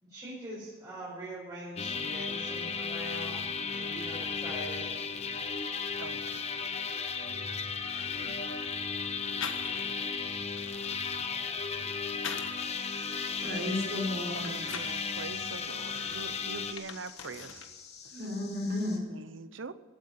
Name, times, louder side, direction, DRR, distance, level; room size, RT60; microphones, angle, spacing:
voice 1, 0.0-4.9 8.2-8.3 10.0-10.1 10.4-11.2, right 1 dB, 20° right, 5.0 m, -44 dB
sound 1, 1.8-16.7, left 5 dB, 30° left, 1.0 m, -35 dB
voice 2, 6.0-6.5 8.2-8.4 14.7-17.6 19.1-19.7, right 4 dB, 70° right, 0.8 m, -43 dB
sound 2, 7.8-8.6 9.4-10.0 10.4-12.7 13.1-15.0 15.6-17.7 18.0-18.8, left 6 dB, 75° left, 1.4 m, -44 dB
sound 3, 12.6-19.0, left 6 dB, 50° left, 2.7 m, -51 dB
voice 3, 13.4-14.5 18.1-19.0, left 1 dB, 50° right, 3.8 m, -33 dB
15.5 x 9.7 x 9.2 m
head